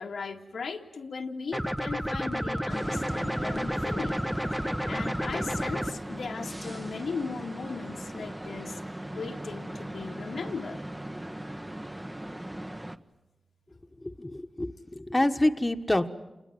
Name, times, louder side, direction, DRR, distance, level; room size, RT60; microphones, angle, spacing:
voice 1, 0.0-4.2 4.5-8.8 9.1-10.8, left 5 dB, 90° left, 2 dB, 1.8 m, -37 dB
sound 1, 1.5-5.9, equal, 5° right, 1.0 m, -31 dB
sound 2, 2.7-13.0, right 1 dB, 20° right, 1.3 m, -38 dB
voice 2, 14.2-16.1, left 1 dB, 20° left, 6 dB, 1.5 m, -26 dB
28.0 x 21.5 x 9.4 m, 1.0 s
cardioid pair, 50°, 0 cm